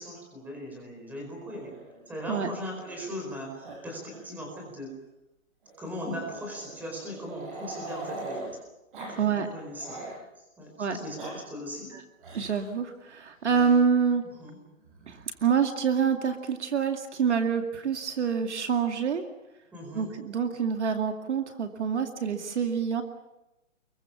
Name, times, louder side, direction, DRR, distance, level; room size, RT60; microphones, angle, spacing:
voice 1, 0.0-1.7 2.1-4.9 5.8-8.6 9.1-10.0 10.4-11.9 14.4-14.6 19.7-20.2, equal, 5° right, 1 dB, 4.6 m, -39 dB
Growling, 1.5-3.3 3.6-3.8 4.0-4.2 4.5-4.6 5.7-8.5 8.9-9.2 9.5-10.2 10.9-11.3 12.2-12.6 13.4-13.7 14.8-15.5, right 2 dB, 40° right, 7.0 m, -42 dB
voice 2, 9.2-9.5 10.8-11.0 11.9-12.0 12.3-14.2 15.1-19.2 19.9-23.0, right 6 dB, 60° right, 5 dB, 2.4 m, -26 dB
24.5 x 23.0 x 7.2 m, 0.96 s
hypercardioid pair, 170°, 39 cm